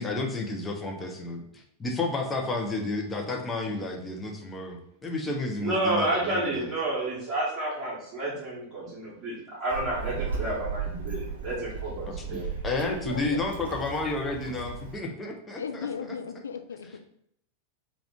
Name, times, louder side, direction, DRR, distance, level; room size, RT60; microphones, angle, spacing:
voice 1, 0.0-1.4 1.8-6.7 12.0-12.4 12.6-16.2 16.8-17.0, left 2 dB, 15° left, 1 dB, 0.6 m, -31 dB
voice 2, 5.6-9.3 9.6-12.4, right 2 dB, 30° right, -8 dB, 1.2 m, -30 dB
Child speech kid speaking, 9.7-15.0, right 4 dB, 60° right, 0.7 m, -36 dB
voice 3, 12.8-13.2 15.6-17.0, left 6 dB, 70° left, 7 dB, 0.3 m, -36 dB
3.4 x 2.4 x 3.6 m, 0.73 s
figure-of-eight pair, 90°, 0 cm